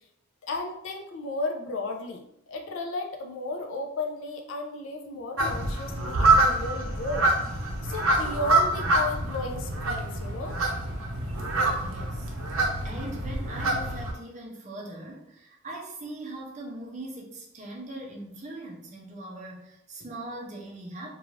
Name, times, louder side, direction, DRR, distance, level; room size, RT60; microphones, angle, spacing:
voice 1, 0.4-7.3 7.8-10.6, left 2 dB, 70° left, 4 dB, 0.4 m, -34 dB
sound 1, 5.4-14.1, right 2 dB, 85° right, 0.5 m, -26 dB
voice 2, 11.8-21.1, right 1 dB, 35° right, -1 dB, 0.5 m, -41 dB
2.5 x 2.3 x 3.1 m, 0.78 s
head